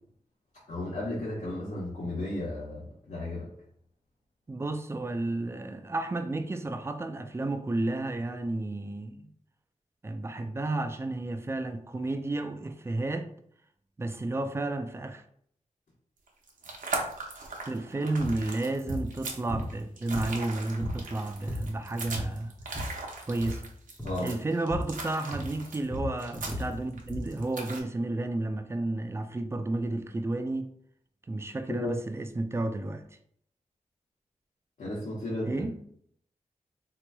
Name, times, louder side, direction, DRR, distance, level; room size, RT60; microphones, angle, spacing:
voice 1, 0.7-3.5 24.0-24.3 31.8-31.9 34.8-35.5, left 1 dB, 75° left, 1.1 m, -34 dB
voice 2, 4.5-9.3 10.0-13.3 14.0-15.2 17.7-22.5 23.3-23.6 24.2-30.7 31.3-33.0 35.5-35.8, right 2 dB, 20° right, 0.3 m, -32 dB
sound 1, 16.3-27.8, right 3 dB, 85° right, 0.7 m, -39 dB
sound 2, 18.2-18.4 18.9-19.1 19.5-20.5 20.8-21.0 21.3-21.8 22.1-23.0 23.3-23.6 24.0-24.2 24.7-25.0 25.3-27.3, equal, 10° left, 0.7 m, -36 dB
3.8 x 3.0 x 2.3 m
wide cardioid pair, 95°, 13 cm